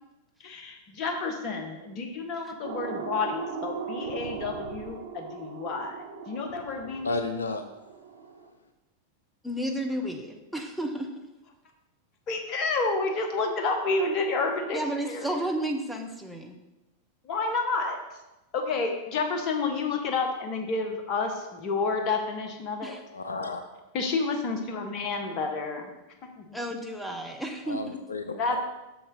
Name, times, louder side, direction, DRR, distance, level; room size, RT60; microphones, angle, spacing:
voice 1, 0.4-7.1 12.3-14.8 15.1-15.3 17.2-18.0 18.5-23.0 23.9-25.9 26.4-26.5 28.3-28.6, left 3 dB, 35° left, 4 dB, 1.2 m, -30 dB
sound 1, 2.6-8.5, right 6 dB, 60° right, 0.9 m, -38 dB
voice 2, 7.0-7.6 23.1-23.6 27.7-28.6, left 3 dB, 75° left, 7 dB, 0.5 m, -32 dB
voice 3, 9.4-11.1 14.7-16.6 22.8-23.0 26.5-28.0, right 1 dB, ahead, 3 dB, 0.8 m, -32 dB
6.9 x 6.5 x 3.8 m, 1.0 s
figure-of-eight pair, 90°, 0 cm